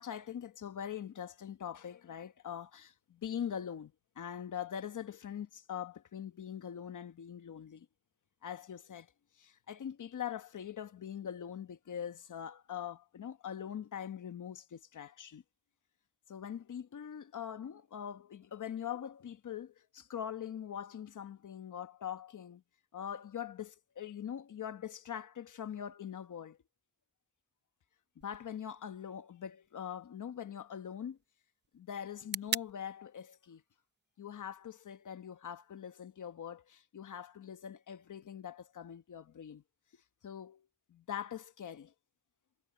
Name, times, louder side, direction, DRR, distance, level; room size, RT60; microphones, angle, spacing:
voice 1, 0.0-7.9 8.4-9.1 9.4-15.4 16.3-22.6 22.9-26.6 28.2-31.2 31.7-33.6 34.2-39.6 40.2-41.9, left 9 dB, 80° left, 1.2 m, -43 dB
sound 1, 28.2-36.2, right 5 dB, 35° right, 0.7 m, -46 dB
cardioid pair, 70°, 30 cm